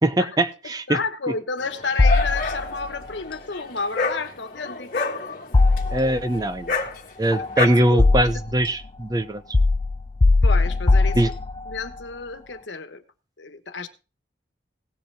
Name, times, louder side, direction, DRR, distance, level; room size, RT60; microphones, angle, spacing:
voice 1, 0.0-1.0 5.9-6.7 7.2-9.4 11.2-11.3, right 1 dB, 20° right, 11 dB, 0.6 m, -21 dB
voice 2, 0.9-5.3 7.4-8.1 8.3-8.4 10.4-11.2 11.7-13.0 13.4-13.9, left 4 dB, 90° left, 9 dB, 1.2 m, -31 dB
Dog, 1.6-7.7, left 3 dB, 50° left, 1.6 m, -29 dB
sound 1, 2.0-2.9 5.5-6.4 7.3-8.6 9.5-11.8, left 3 dB, 30° left, 0.4 m, -19 dB
17.5 x 7.9 x 3.4 m, 0.32 s
head